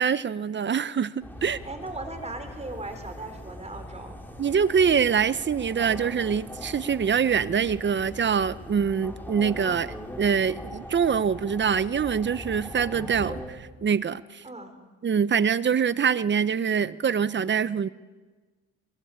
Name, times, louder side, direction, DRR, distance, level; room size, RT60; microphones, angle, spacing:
voice 1, 0.0-1.6 4.4-14.4 15.0-17.9, right 7 dB, 40° right, 16 dB, 0.9 m, -24 dB
sound 1, 1.2-13.5, left 1 dB, 5° left, 5.6 m, -41 dB
voice 2, 1.6-4.2 14.4-14.7, right 2 dB, 20° right, 7 dB, 4.7 m, -38 dB
22.5 x 22.5 x 8.8 m, 1.3 s
cardioid pair, 90°, 30 cm